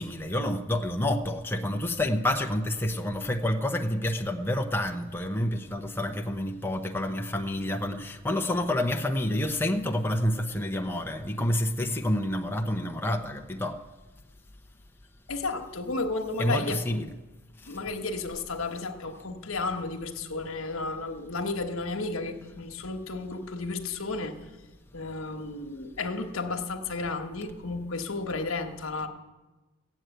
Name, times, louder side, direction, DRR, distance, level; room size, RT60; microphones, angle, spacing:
voice 1, 0.0-13.8 16.4-17.1 17.6-17.8, left 1 dB, 10° left, 4 dB, 0.7 m, -28 dB
voice 2, 15.3-17.0 17.7-24.4 24.9-29.1, left 3 dB, 80° left, 5 dB, 1.3 m, -33 dB
15.5 x 7.9 x 9.1 m, 1.1 s
head